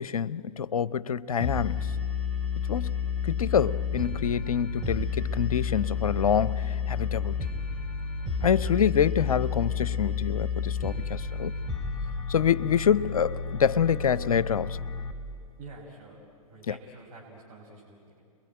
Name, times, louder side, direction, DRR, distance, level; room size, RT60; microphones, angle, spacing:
voice 1, 0.0-1.9 2.7-7.3 8.4-11.5 12.3-14.8 16.7-16.8, left 8 dB, 70° left, 0.7 m, -26 dB
sound 1, 1.4-15.1, left 6 dB, 5° left, 3.2 m, -31 dB
voice 2, 15.6-16.2 16.5-18.2, right 3 dB, 40° right, 5.3 m, -48 dB
30.0 x 22.0 x 9.0 m
figure-of-eight pair, 105°, 19 cm